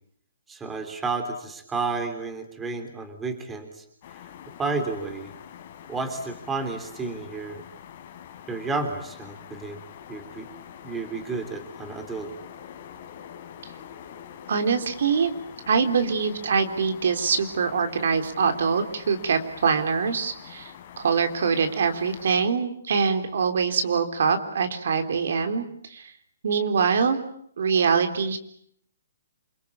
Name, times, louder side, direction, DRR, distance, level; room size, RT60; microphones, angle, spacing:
voice 1, 0.5-3.8 4.6-5.3 5.9-7.6 8.5-9.8 10.1-10.5 10.8-12.3, right 3 dB, 10° right, 7 dB, 3.4 m, -31 dB
sound 1, 4.0-22.4, left 9 dB, 40° left, 3.9 m, -45 dB
voice 2, 14.5-15.3 15.7-25.6 25.9-26.1 26.4-27.2 27.6-28.4, right 5 dB, 65° right, 7 dB, 3.7 m, -24 dB
28.5 x 23.5 x 8.7 m, 0.69 s
hypercardioid pair, 165°, 0 cm